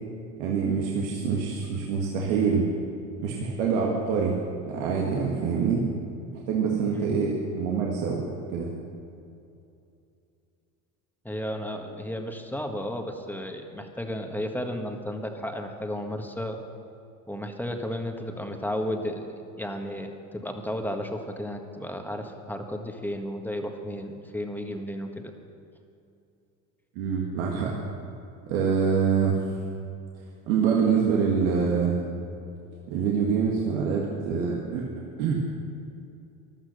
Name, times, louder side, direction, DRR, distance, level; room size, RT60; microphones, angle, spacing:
voice 1, 0.4-2.7 3.2-4.4 4.7-5.8 6.3-8.3 8.5-8.7 27.0-27.7 28.5-29.4 30.5-32.0 32.9-35.4, right 6 dB, 80° right, -2 dB, 1.9 m, -25 dB
voice 2, 6.9-7.2 11.2-16.6 17.3-19.3 19.6-25.3, equal, 5° left, 4 dB, 1.6 m, -33 dB
15.0 x 12.0 x 6.6 m, 2.7 s
supercardioid pair, 95°, 40 cm